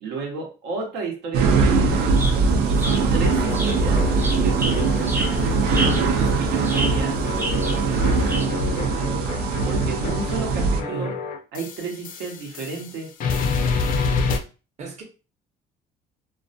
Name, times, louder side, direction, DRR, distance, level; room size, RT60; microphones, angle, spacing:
voice 1, 0.0-4.0 4.4-5.6 6.0-9.1 9.6-11.1 11.5-13.1, right 4 dB, 90° right, 0.8 m, -33 dB
sound 1, 1.3-10.8, right 4 dB, 75° right, 0.4 m, -21 dB
sound 2, 1.9-8.5, right 1 dB, 15° right, 0.4 m, -32 dB
sound 3, 3.2-12.9 13.2-14.4, left 5 dB, 55° left, 0.4 m, -29 dB
voice 2, 10.4-11.2 14.8-15.0, right 3 dB, 40° right, 0.7 m, -36 dB
2.3 x 2.1 x 2.6 m
cardioid pair, 110°, 17 cm